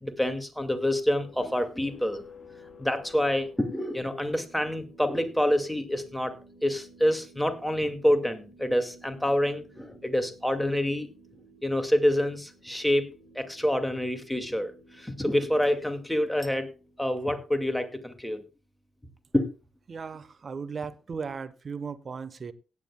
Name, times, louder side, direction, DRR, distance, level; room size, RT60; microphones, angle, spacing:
voice 1, 0.0-2.2 2.8-6.3 6.6-11.1 11.6-13.1 13.4-14.7 15.0-16.7 17.0-18.4 19.3-19.5, left 1 dB, 5° left, 7 dB, 2.3 m, -27 dB
sound 1, 1.2-17.5, left 1 dB, 45° left, 3.7 m, -54 dB
voice 2, 19.9-22.5, right 5 dB, 45° right, 14 dB, 1.1 m, -36 dB
17.5 x 9.6 x 2.3 m, 0.30 s
hypercardioid pair, 45°, 0 cm